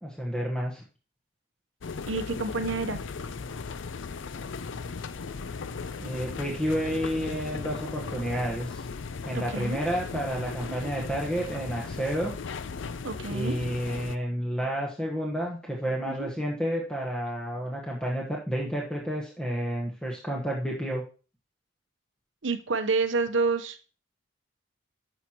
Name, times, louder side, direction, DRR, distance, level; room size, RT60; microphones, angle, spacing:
voice 1, 0.0-0.8 6.0-8.9 9.2-12.3 13.3-21.0, equal, 5° left, -2 dB, 1.1 m, -30 dB
sound 1, 1.8-14.2, left 4 dB, 70° left, 0.5 m, -37 dB
voice 2, 2.1-3.0 9.3-9.8 10.8-10.9 13.0-13.6 16.0-16.3 22.4-24.0, right 4 dB, 70° right, 8 dB, 0.8 m, -29 dB
11.5 x 6.4 x 2.9 m, 0.36 s
head